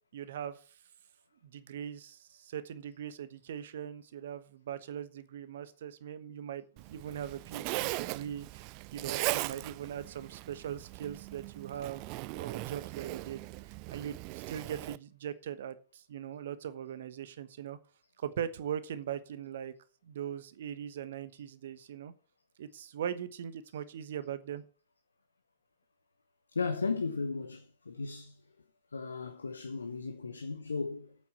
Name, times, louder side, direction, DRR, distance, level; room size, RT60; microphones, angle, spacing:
voice 1, 0.1-0.6 1.4-8.6 8.9-12.1 12.3-17.8 18.2-19.7 20.0-22.1 22.6-24.6, right 9 dB, 60° right, 1.1 m, -40 dB
Zipper (clothing), 6.8-15.0, right 21 dB, 45° right, 0.4 m, -39 dB
voice 2, 26.5-28.4 28.9-31.2, left 4 dB, 75° left, 0.9 m, -35 dB
8.7 x 7.8 x 6.9 m
figure-of-eight pair, 90°, 0 cm